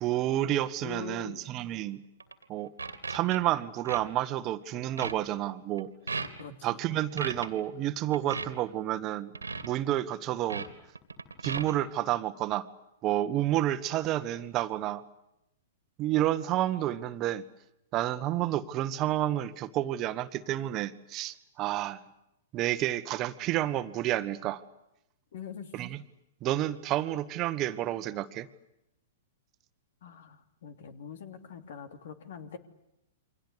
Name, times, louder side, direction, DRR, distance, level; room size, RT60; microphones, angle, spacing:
voice 1, 0.0-2.0 2.5-2.7 3.1-5.9 6.6-9.3 9.6-10.7 11.4-12.7 13.0-15.0 16.0-17.4 17.9-22.0 22.5-24.6 25.7-26.0 26.4-28.5, right 13 dB, 35° right, 12 dB, 1.5 m, -30 dB
voice 2, 0.8-1.4 6.4-6.8 25.3-25.7 30.0-32.6, left 7 dB, 60° left, 9 dB, 2.9 m, -43 dB
sound 1, 2.2-2.4 2.8-3.4 3.9-4.0 4.4-4.6 5.0-5.1 5.8-5.9 6.1-6.4 7.2-7.5 8.1-8.5 9.3-9.7 10.5-10.7 11.0-11.7, right 4 dB, 85° right, 2.4 m, -36 dB
29.0 x 24.5 x 8.1 m, 0.85 s
figure-of-eight pair, 105°, 0 cm